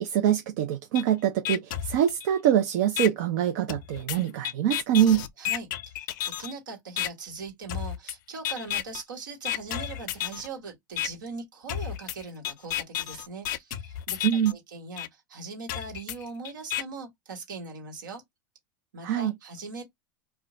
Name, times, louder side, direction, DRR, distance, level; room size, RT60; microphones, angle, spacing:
voice 1, 0.0-5.2 14.2-14.5 19.0-19.3, right 10 dB, 65° right, 0.6 m, -24 dB
sound 1, 0.9-1.0 1.4-2.5 3.0-3.1 3.7-6.5 7.0-7.1 7.7-8.1 8.4-9.0 9.4-10.5 11.0-11.1 11.7-14.5 15.0-15.1 15.7-16.8, left 12 dB, 70° left, 0.5 m, -32 dB
voice 2, 5.4-18.2 18.9-19.8, right 4 dB, 85° right, 1.4 m, -40 dB
2.4 x 2.1 x 3.7 m
hypercardioid pair, 95°, 10 cm